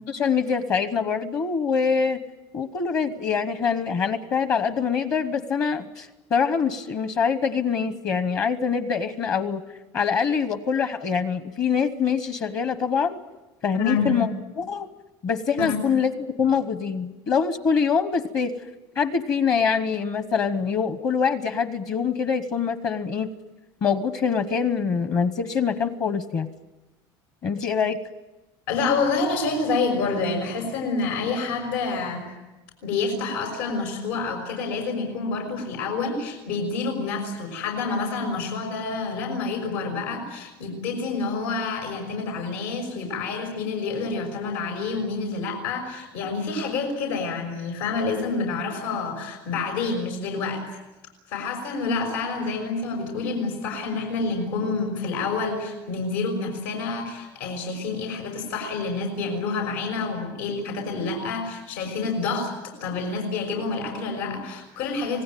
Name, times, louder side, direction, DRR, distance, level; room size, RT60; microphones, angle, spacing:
voice 1, 0.1-2.2 2.5-9.6 9.9-13.2 13.6-14.3 14.6-14.9 15.2-18.5 19.0-23.3 23.8-26.5 27.4-28.0, left 6 dB, 35° left, 11 dB, 1.0 m, -24 dB
voice 2, 13.7-14.2 15.6-15.8 28.7-32.3 32.8-50.6 51.3-62.5 62.8-65.2, left 4 dB, 85° left, 3 dB, 5.9 m, -28 dB
26.0 x 19.0 x 9.2 m, 1.1 s
cardioid pair, 180°, 10 cm